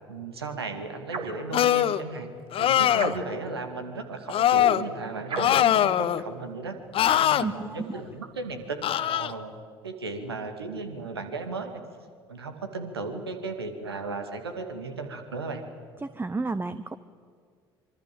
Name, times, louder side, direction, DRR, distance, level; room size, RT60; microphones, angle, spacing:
voice 1, 0.1-2.3 2.6-6.8 7.2-9.5 9.8-11.7 12.3-15.6, right 3 dB, 85° right, 6 dB, 2.3 m, -35 dB
sound 1, 1.1-1.5 2.9-3.5 5.3-5.7, right 3 dB, 45° right, 3.2 m, -33 dB
sound 2, 1.5-2.0 2.5-3.2 4.3-4.8 5.4-6.2 6.9-7.4 8.8-9.3, left 11 dB, 45° left, 1.0 m, -22 dB
voice 2, 7.4-7.9 16.0-17.0, right 3 dB, 15° right, 13 dB, 0.9 m, -31 dB
26.0 x 24.5 x 7.8 m, 2.1 s
figure-of-eight pair, 55°, 13 cm